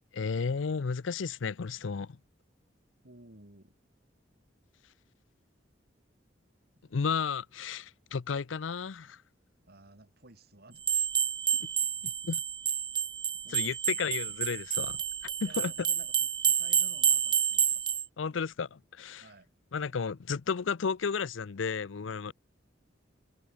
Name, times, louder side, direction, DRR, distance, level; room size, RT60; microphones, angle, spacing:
voice 1, 0.1-2.2 6.9-9.2 12.0-12.4 13.5-15.7 18.2-19.2 19.7-22.3, left 5 dB, 85° left, 0.6 m, -33 dB
voice 2, 3.0-3.8 6.7-6.8 9.6-10.8 13.4-14.1 15.5-18.0 19.2-19.5, right 2 dB, 55° right, 3.7 m, -55 dB
sound 1, 10.8-18.1, right 9 dB, 25° right, 0.5 m, -29 dB
head